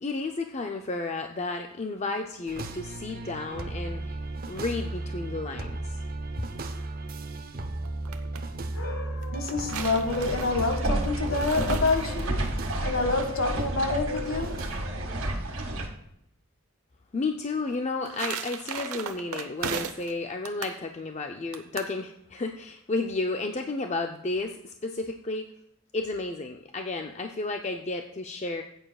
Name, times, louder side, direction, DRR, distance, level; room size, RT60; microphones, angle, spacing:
voice 1, 0.0-4.2 4.5-6.0 17.1-25.5 25.9-28.6, left 3 dB, 30° left, 4 dB, 0.5 m, -32 dB
sound 1, 2.5-15.3, right 2 dB, 40° right, 0.7 m, -36 dB
sound 2, 7.8-8.4 9.2-12.5 17.7-20.1 20.4-20.8 21.5-21.9, right 6 dB, 75° right, 0.8 m, -36 dB
voice 2, 8.7-12.4 12.8-14.6, left 3 dB, 60° left, 4 dB, 1.8 m, -28 dB
sound 3, 10.1-15.9, right 1 dB, 60° right, 1.9 m, -31 dB
16.0 x 8.8 x 2.3 m, 0.74 s
head